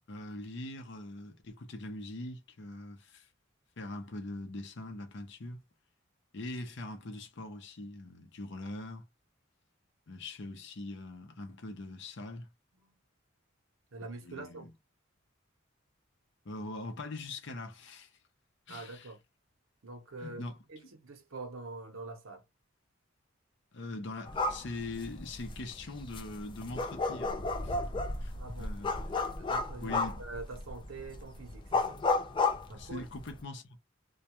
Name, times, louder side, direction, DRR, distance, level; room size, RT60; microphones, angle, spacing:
voice 1, 0.1-3.3 3.8-5.6 6.3-9.1 10.1-12.5 14.2-14.7 16.4-18.1 18.7-19.1 20.2-20.6 23.7-27.3 27.6-27.8 28.2-28.3 28.6-28.9 29.8-30.2 32.7-33.8, left 2 dB, 60° left, 0.6 m, -42 dB
voice 2, 13.9-14.7 18.7-19.2 19.8-22.4 28.3-28.7 29.4-32.0 32.7-33.1, right 3 dB, 85° right, 0.7 m, -45 dB
sound 1, 24.3-33.4, left 3 dB, 25° left, 0.3 m, -34 dB
2.2 x 2.2 x 2.8 m
head